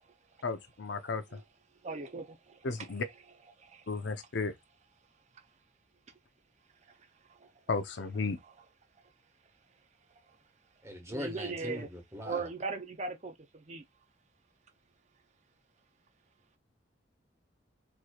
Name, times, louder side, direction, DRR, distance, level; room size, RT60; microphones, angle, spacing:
voice 1, 0.4-1.4 2.6-3.0 3.9-4.5 7.7-8.4, left 4 dB, 70° left, 0.7 m, -34 dB
voice 2, 1.8-2.6 3.6-3.8 7.4-7.5 11.1-11.9 12.3-13.8, right 4 dB, 35° right, 0.5 m, -38 dB
voice 3, 10.8-12.5, left 1 dB, 15° right, 1.2 m, -40 dB
4.6 x 3.0 x 2.3 m
head